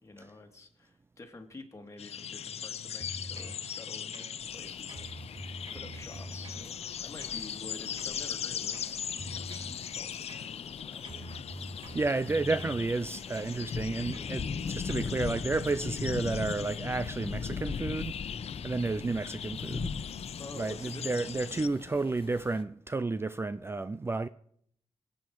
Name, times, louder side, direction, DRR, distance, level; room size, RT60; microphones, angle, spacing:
voice 1, 0.0-5.4 5.7-8.8 9.3-11.3 20.3-21.8, left 2 dB, 25° left, 2.5 m, -49 dB
sound 1, 2.0-21.7, left 8 dB, 75° left, 0.5 m, -40 dB
sound 2, 3.0-3.6 4.1-4.6 4.9-6.7 7.2-7.4 8.0-8.2 8.7-9.8 10.3-10.8 11.0-12.8 13.4-13.6 14.1-14.4 14.9-15.1, right 1 dB, 40° right, 1.8 m, -45 dB
sound 3, 4.4-22.6, left 5 dB, 60° left, 1.1 m, -41 dB
voice 2, 11.9-18.2 18.6-20.0 20.5-24.3, right 3 dB, 25° right, 0.4 m, -31 dB
24.5 x 8.6 x 4.7 m
wide cardioid pair, 100°, 11 cm